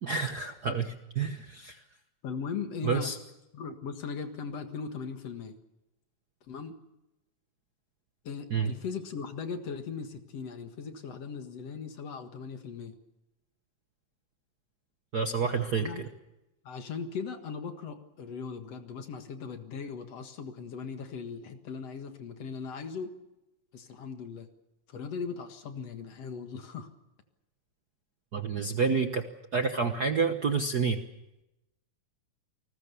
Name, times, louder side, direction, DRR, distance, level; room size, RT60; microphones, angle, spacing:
voice 1, 0.0-1.8 2.8-3.2 8.5-8.7 15.1-15.9 28.3-29.2 29.5-31.0, right 5 dB, 60° right, 7 dB, 1.0 m, -29 dB
voice 2, 2.2-3.1 3.5-5.6 6.5-6.8 8.2-13.0 15.8-16.1 16.6-23.2 23.7-24.5 24.9-26.9, left 5 dB, 60° left, 7 dB, 2.7 m, -38 dB
28.5 x 20.0 x 7.0 m, 0.94 s
omnidirectional pair, 3.4 m